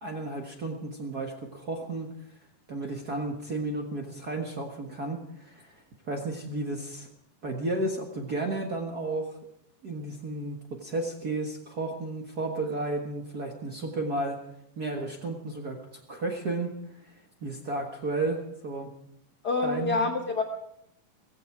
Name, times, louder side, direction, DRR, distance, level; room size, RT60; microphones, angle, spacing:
voice 1, 0.0-2.1 2.7-7.1 7.4-9.4 9.8-14.4 14.8-15.8 16.1-16.7 17.1-17.2 17.4-18.9 19.6-20.1, right 2 dB, 45° right, 2 dB, 1.2 m, -33 dB
voice 2, 19.4-20.4, left 4 dB, 85° left, 3 dB, 0.8 m, -27 dB
17.5 x 15.5 x 4.8 m, 0.77 s
omnidirectional pair, 3.9 m